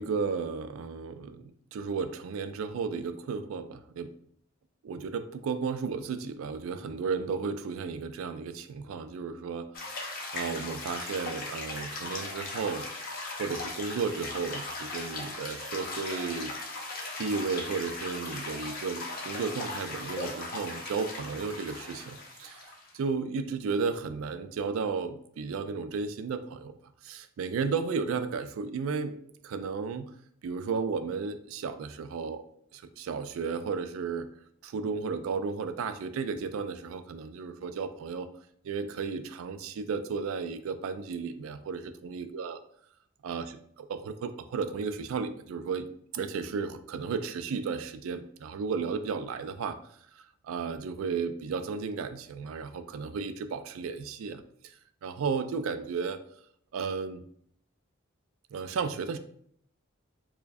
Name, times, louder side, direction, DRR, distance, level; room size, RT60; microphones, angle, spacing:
voice 1, 0.0-4.1 4.8-16.9 17.2-26.8 27.0-29.2 29.4-30.1 30.4-32.4 32.7-34.3 34.6-38.3 38.6-42.6 43.2-49.8 50.2-54.7 55.0-56.2 56.7-57.2 58.5-59.2, right 5 dB, 75° right, 10 dB, 0.3 m, -34 dB
sound 1, 9.7-23.0, left 3 dB, 45° left, 0.6 m, -38 dB
4.5 x 2.1 x 2.6 m, 0.66 s
head